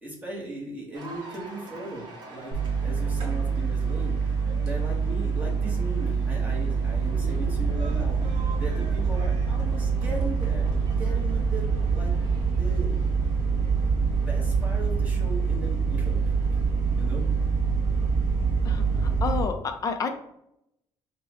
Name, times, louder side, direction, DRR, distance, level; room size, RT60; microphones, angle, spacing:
voice 1, 0.0-4.4 4.6-12.1 12.6-12.9 13.7-16.2 17.0-17.2, right 2 dB, 15° right, -3 dB, 1.1 m, -38 dB
Cheering / Applause, 0.9-14.3, right 2 dB, 40° right, 1.0 m, -46 dB
sound 1, 2.5-19.4, right 5 dB, 60° right, 1.4 m, -25 dB
voice 2, 18.6-20.1, left 5 dB, 35° left, 6 dB, 0.5 m, -30 dB
6.3 x 2.2 x 2.8 m, 0.79 s
cardioid pair, 155°, 11 cm